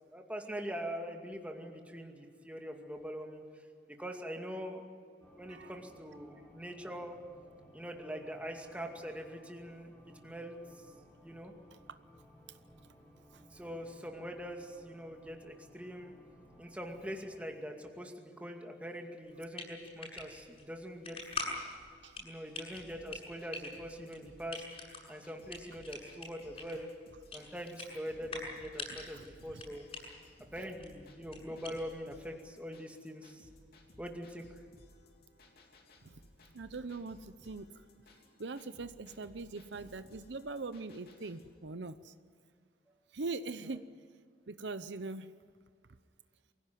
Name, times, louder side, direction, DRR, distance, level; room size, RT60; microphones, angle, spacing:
voice 1, 0.1-3.4 4.0-4.8 5.4-7.2 7.7-9.9 10.2-10.8 11.2-11.5 13.5-16.1 16.6-21.2 21.6-21.7 22.2-24.6 25.1-26.9 27.3-29.9 30.5-33.5 34.0-34.6, equal, 10° right, 2 dB, 2.3 m, -43 dB
sound 1, 5.2-17.5, equal, 10° left, 3.8 m, -60 dB
sound 2, 19.2-32.2, left 3 dB, 35° left, 7.3 m, -45 dB
sound 3, 22.5-41.5, left 1 dB, 60° left, 3.2 m, -60 dB
voice 2, 29.1-29.6 36.0-36.2 36.5-37.8 38.4-42.1 43.1-43.9 44.5-45.3, right 3 dB, 75° right, 12 dB, 0.8 m, -42 dB
24.0 x 16.5 x 9.3 m, 2.1 s
head